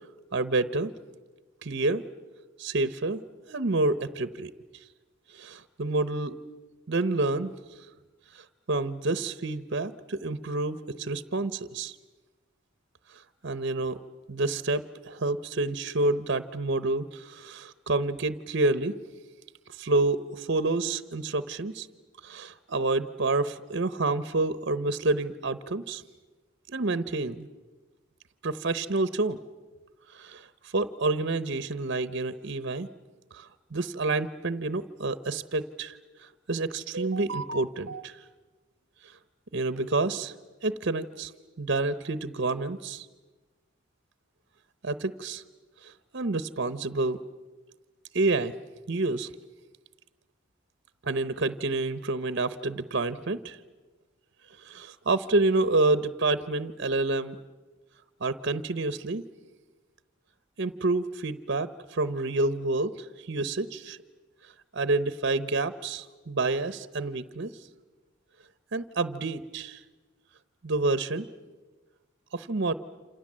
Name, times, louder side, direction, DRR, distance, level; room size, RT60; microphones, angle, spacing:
voice 1, 0.3-0.9 1.6-2.0 2.6-3.2 3.5-4.5 5.3-6.3 6.9-7.5 8.3-11.9 13.4-14.0 14.3-18.9 19.8-21.9 22.2-26.0 26.7-27.5 28.4-29.4 30.1-30.5 30.7-32.9 33.3-35.9 36.2-38.2 39.5-40.3 40.6-41.3 41.6-43.1 44.8-45.4 45.8-47.2 48.1-48.5 48.9-49.3 51.0-53.6 54.6-57.4 58.2-59.2 60.6-62.9 63.3-64.0 64.7-67.5 68.7-69.8 70.6-71.3 72.3-72.7, right 2 dB, 60° right, 14 dB, 0.9 m, -28 dB
28.5 x 27.0 x 7.5 m, 1.3 s
head